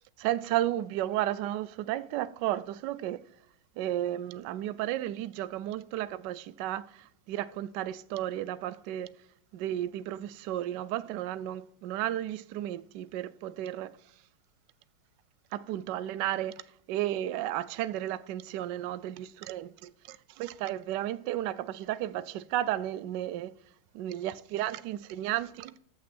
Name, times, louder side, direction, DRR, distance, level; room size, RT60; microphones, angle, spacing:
voice 1, 0.2-3.2 3.8-6.8 7.3-9.2 9.5-13.9 15.5-16.5 16.9-23.5 23.9-25.7, right 13 dB, 75° right, 1.0 m, -33 dB
14.5 x 6.0 x 4.4 m
omnidirectional pair, 2.3 m